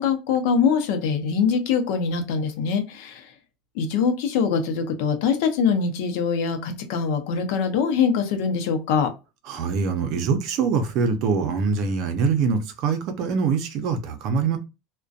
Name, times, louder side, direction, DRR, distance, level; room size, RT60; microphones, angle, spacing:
voice 1, 0.0-3.2 3.8-9.1, left 6 dB, 70° left, 0.6 m, -23 dB
voice 2, 9.5-14.6, right 5 dB, 55° right, 0.6 m, -24 dB
2.5 x 2.1 x 2.4 m
supercardioid pair, 120°, 0 cm